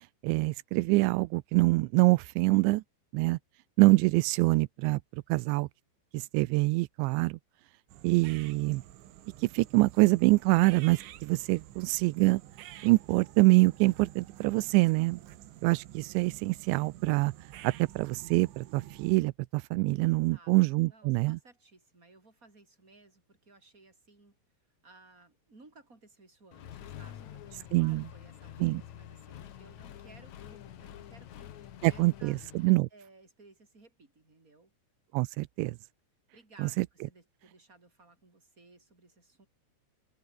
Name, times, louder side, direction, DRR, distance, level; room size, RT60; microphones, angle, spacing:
voice 1, 0.2-2.8 3.1-3.4 3.8-5.0 5.3-5.7 6.1-7.4 8.0-8.8 9.4-12.4 12.8-15.2 15.6-17.3 17.6-21.4 27.7-28.0 28.6-28.8 31.8-32.9 35.1-35.8 36.6-36.9, right 23 dB, 90° right, 2.6 m, -25 dB
sound 1, 7.9-19.2, right 13 dB, 70° right, 3.9 m, -50 dB
voice 2, 20.1-20.5 20.8-24.4 24.8-32.4 32.9-34.7 36.3-39.5, right 3 dB, 15° right, 5.8 m, -59 dB
Accelerating revving vroom, 26.5-32.7, left 10 dB, 85° left, 1.6 m, -47 dB
omnidirectional pair, 5.8 m